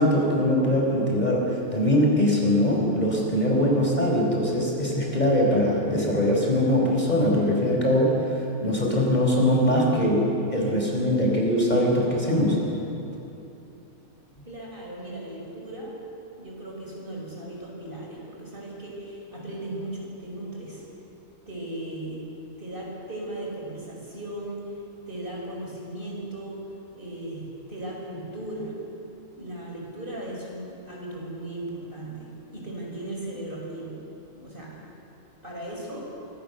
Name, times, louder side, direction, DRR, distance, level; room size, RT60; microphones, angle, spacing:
voice 1, 0.0-1.5 1.7-10.2 10.5-12.6, equal, 30° left, -2 dB, 4.6 m, -22 dB
voice 2, 14.5-20.9 21.5-22.2 22.6-24.7 25.1-28.7 29.3-34.0 34.3-34.8 35.4-36.0, right 1 dB, 35° right, -3 dB, 6.0 m, -37 dB
26.0 x 22.5 x 6.9 m, 2.9 s
omnidirectional pair, 1.5 m